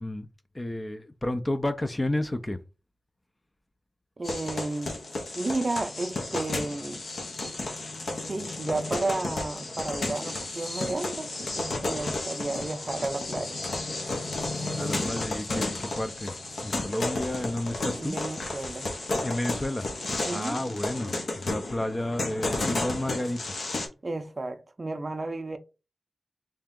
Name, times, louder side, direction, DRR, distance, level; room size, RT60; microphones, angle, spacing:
voice 1, 0.5-2.6 14.8-16.4 16.6-18.2 19.2-19.9 20.3-23.6, left 1 dB, 25° left, 0.4 m, -31 dB
sound 1, 4.2-23.9, left 2 dB, 75° left, 1.0 m, -33 dB
voice 2, 4.2-5.0 5.3-7.0 8.2-13.6 14.8-15.2 18.0-18.9 20.3-20.6 24.0-25.6, right 2 dB, 35° right, 0.4 m, -32 dB
3.4 x 2.8 x 3.6 m
wide cardioid pair, 85°, 0 cm